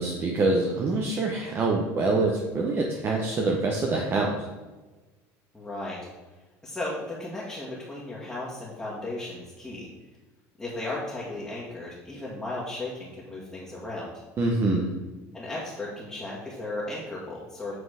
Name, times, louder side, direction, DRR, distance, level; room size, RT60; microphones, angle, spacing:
voice 1, 0.0-4.3 14.4-14.9, right 3 dB, 35° right, 0 dB, 0.9 m, -25 dB
voice 2, 5.5-6.0 6.6-9.9 10.6-14.1 15.3-17.7, left 2 dB, 10° left, -7 dB, 1.7 m, -35 dB
7.8 x 3.8 x 4.9 m, 1.2 s
supercardioid pair, 120°, 7 cm